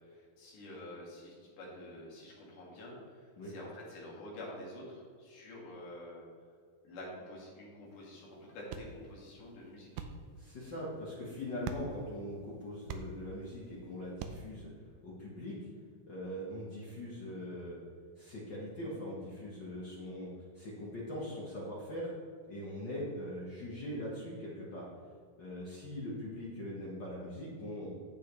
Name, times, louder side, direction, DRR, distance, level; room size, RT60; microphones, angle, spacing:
voice 1, 0.0-6.2 6.8-10.1, left 1 dB, 55° left, -4 dB, 3.5 m, -48 dB
sound 1, 7.9-14.6, right 5 dB, 90° right, 1.9 m, -47 dB
voice 2, 10.4-14.7 15.0-15.6 16.1-17.8 18.2-22.1 22.5-24.9 25.4-27.9, left 1 dB, 75° left, -6 dB, 1.0 m, -41 dB
10.0 x 8.3 x 3.3 m, 2.1 s
omnidirectional pair, 4.5 m